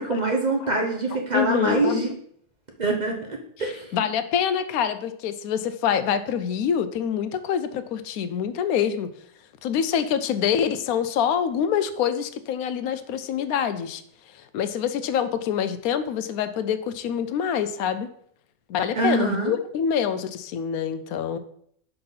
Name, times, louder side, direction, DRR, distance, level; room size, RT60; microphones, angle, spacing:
voice 1, 0.0-2.1 2.8-3.9 18.9-19.5, right 3 dB, 35° right, 1 dB, 0.9 m, -25 dB
voice 2, 1.1-2.0 3.6-9.1 9.6-14.0 14.5-18.1 18.7-21.4, left 8 dB, 85° left, 11 dB, 1.0 m, -26 dB
5.6 x 3.9 x 5.6 m, 0.65 s
omnidirectional pair, 1.5 m